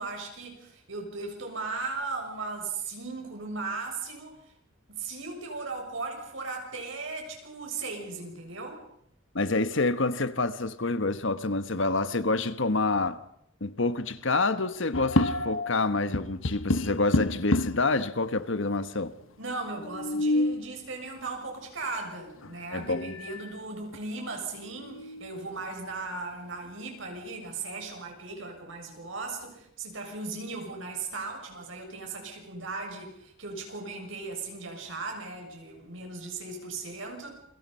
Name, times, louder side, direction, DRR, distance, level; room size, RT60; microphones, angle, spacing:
voice 1, 0.0-4.4 4.9-8.8 19.4-37.4, right 3 dB, 70° right, 7.2 m, -37 dB
voice 2, 9.3-13.2 13.6-19.1 22.7-23.1, left 3 dB, 65° left, 1.4 m, -27 dB
sound 1, 14.9-15.8 16.1-17.9 18.7-18.8 19.0-19.1 19.8-20.7 22.4-22.5 23.0-23.5 23.9-24.0 24.5-25.4, left 2 dB, 85° left, 1.2 m, -28 dB
28.5 x 24.5 x 5.7 m
head